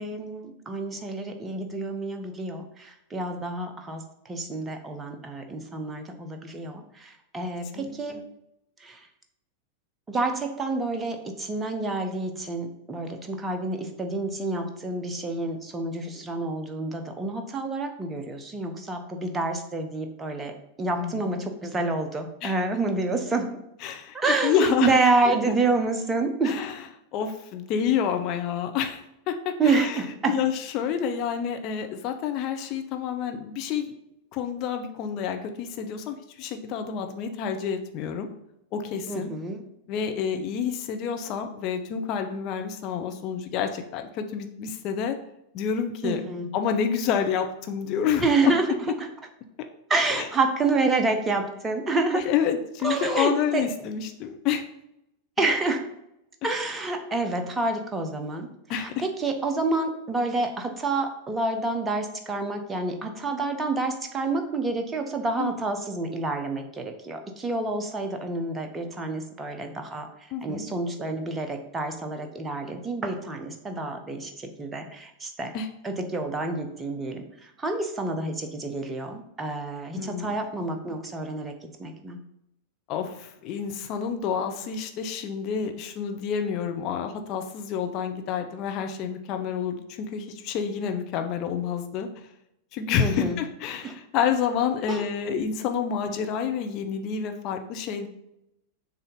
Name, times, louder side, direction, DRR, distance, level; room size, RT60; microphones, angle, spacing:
voice 1, 0.0-8.2 8.8-9.1 10.1-20.5 20.8-23.5 24.1-26.5 29.6-30.4 39.1-39.6 46.0-46.5 48.2-48.7 49.0-49.1 49.9-52.2 52.8-53.6 55.4-55.8 56.4-58.5 58.7-70.1 70.4-75.5 75.8-81.5 81.8-82.2 93.0-93.4 93.8-93.9 94.9-95.0, right 3 dB, 15° right, 4 dB, 0.9 m, -28 dB
voice 2, 7.7-8.3 20.9-21.2 22.4-22.5 23.8-24.2 24.4-24.9 26.4-26.7 27.1-29.0 29.3-30.0 30.3-33.9 34.3-38.3 38.7-39.3 39.9-45.2 45.5-46.2 46.5-48.5 50.1-50.3 52.1-54.6 58.7-59.0 65.4-65.5 70.3-70.6 75.5-75.7 79.9-80.4 82.9-92.1 92.7-98.1, left 7 dB, 40° left, 6 dB, 0.8 m, -28 dB
7.1 x 2.8 x 5.3 m, 0.83 s
figure-of-eight pair, 90°, 0 cm